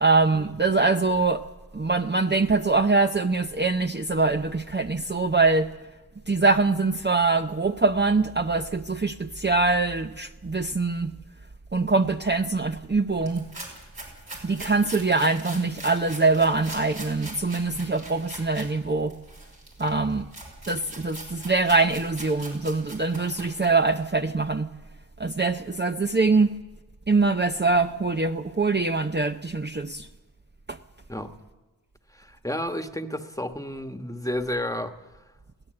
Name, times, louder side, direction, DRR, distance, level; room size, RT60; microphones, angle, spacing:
voice 1, 0.0-1.4 1.7-5.7 6.3-11.1 11.7-13.4 14.4-19.1 19.8-20.3 20.7-24.7 25.2-26.5 27.1-30.1 30.7-30.8, right 3 dB, 30° right, 0.6 m, -23 dB
sound 1, 13.2-18.7 19.1-24.0, right 2 dB, 80° right, 5.6 m, -42 dB
voice 2, 32.1-34.9, left 1 dB, 10° left, 1.3 m, -31 dB
22.0 x 17.0 x 7.7 m
wide cardioid pair, 45°, 37 cm